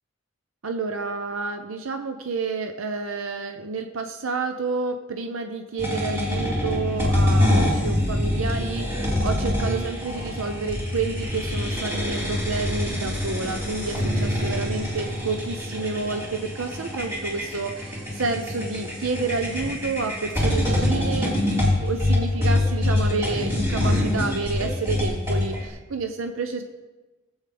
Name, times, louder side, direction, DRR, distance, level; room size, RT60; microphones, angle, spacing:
voice 1, 0.6-21.4 21.8-26.7, right 4 dB, 80° right, 5 dB, 0.7 m, -29 dB
sound 1, 5.8-25.7, left 1 dB, 15° right, 3.2 m, -25 dB
19.0 x 8.1 x 3.5 m, 1.2 s
head